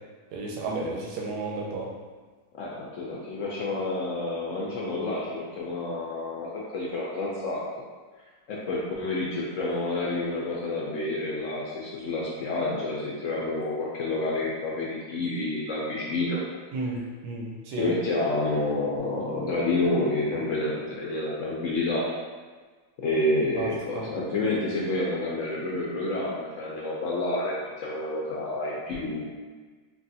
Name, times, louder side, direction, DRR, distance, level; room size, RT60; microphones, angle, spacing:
voice 1, 0.3-1.9 16.7-17.9 23.6-23.7 24.0-24.1, right 3 dB, 90° right, -2 dB, 1.2 m, -32 dB
voice 2, 2.6-7.6 8.5-16.4 17.7-22.0 23.0-29.2, left 2 dB, 70° left, -5 dB, 0.8 m, -29 dB
3.3 x 2.4 x 2.6 m, 1.4 s
omnidirectional pair, 1.7 m